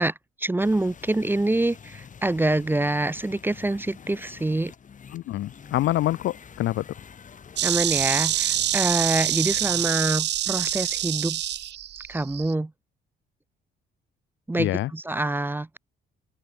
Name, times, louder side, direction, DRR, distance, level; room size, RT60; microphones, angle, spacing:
voice 1, 0.0-4.7 7.6-11.4 12.1-12.7 14.5-15.8, right 2 dB, 10° right, 0.6 m, -26 dB
sound 1, 0.6-9.9, left 7 dB, 40° left, 1.3 m, -46 dB
voice 2, 5.1-6.8 14.6-14.9, left 15 dB, 75° left, 0.6 m, -26 dB
Insect, 7.6-12.5, right 11 dB, 60° right, 0.7 m, -26 dB
open air
cardioid pair, 90°, 20 cm